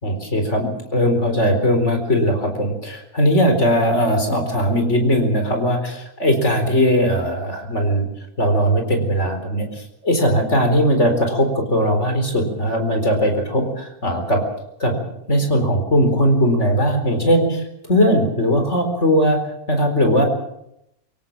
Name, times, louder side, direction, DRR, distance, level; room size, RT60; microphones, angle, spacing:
voice 1, 0.0-8.1 8.4-14.4 14.8-15.0 15.3-17.6 17.9-19.4 19.7-20.2, equal, 50° left, 5 dB, 4.5 m, -19 dB
24.0 x 17.5 x 7.5 m, 0.81 s
omnidirectional pair, 1.5 m